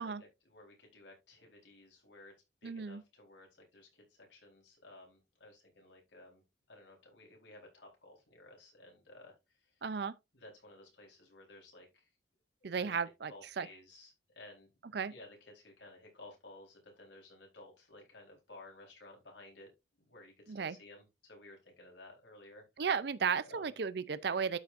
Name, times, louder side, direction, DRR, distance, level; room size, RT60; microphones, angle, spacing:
voice 1, 0.0-2.3 2.6-6.4 6.7-9.7 10.3-12.1 12.6-14.7 15.1-19.7 20.0-22.6 23.4-23.7, left 2 dB, 80° left, 4.1 m, -56 dB
voice 2, 2.6-3.0 9.8-10.1 12.6-13.7 14.9-15.1 20.5-20.8 22.8-24.6, right 6 dB, 65° right, 0.5 m, -34 dB
12.5 x 5.3 x 2.5 m
head